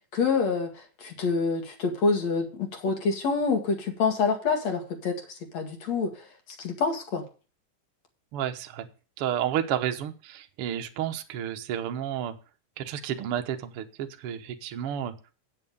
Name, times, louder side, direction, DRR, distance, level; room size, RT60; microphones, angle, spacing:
voice 1, 0.1-6.3 6.6-7.2, left 4 dB, 55° left, 3 dB, 3.1 m, -27 dB
voice 2, 8.3-8.9 9.2-12.3 12.8-15.1, right 10 dB, 65° right, 7 dB, 1.5 m, -31 dB
9.1 x 8.1 x 5.3 m, 0.35 s
omnidirectional pair, 3.8 m